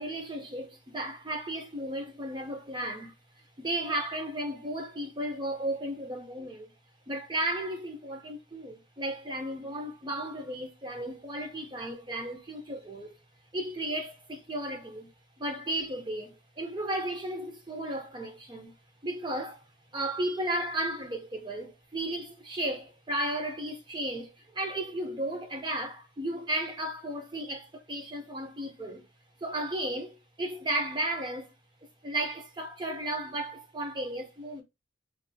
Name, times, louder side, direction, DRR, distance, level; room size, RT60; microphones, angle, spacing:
voice 1, 0.0-3.1 3.6-6.7 7.1-13.1 13.5-15.1 15.4-18.7 19.0-19.6 19.9-29.1 29.4-31.5 32.0-34.6, right 1 dB, 25° right, 0.6 m, -34 dB
3.3 x 2.7 x 2.2 m
head